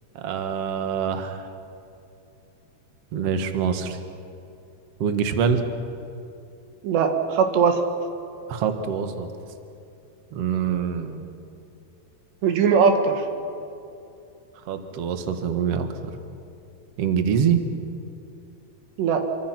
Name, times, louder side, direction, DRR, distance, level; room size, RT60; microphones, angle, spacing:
voice 1, 0.1-1.5 3.1-4.0 5.0-5.6 8.5-9.3 10.3-11.3 14.7-16.1 17.0-17.6, right 7 dB, 60° right, 7 dB, 1.6 m, -25 dB
voice 2, 6.8-7.8 12.4-13.3 19.0-19.2, right 6 dB, 80° right, 5 dB, 3.8 m, -20 dB
27.0 x 24.0 x 6.0 m, 2.6 s
omnidirectional pair, 4.8 m